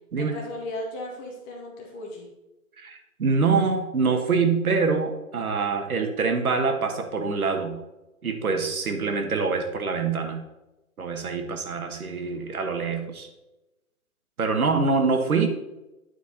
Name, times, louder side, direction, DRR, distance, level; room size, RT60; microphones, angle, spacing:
voice 1, 0.2-2.3, left 1 dB, 15° left, 0 dB, 0.7 m, -36 dB
voice 2, 2.8-7.8 8.2-10.4 11.0-13.3 14.4-15.5, right 4 dB, 85° right, 5 dB, 1.5 m, -25 dB
9.3 x 4.7 x 4.2 m, 1.0 s
hypercardioid pair, 150°, 42 cm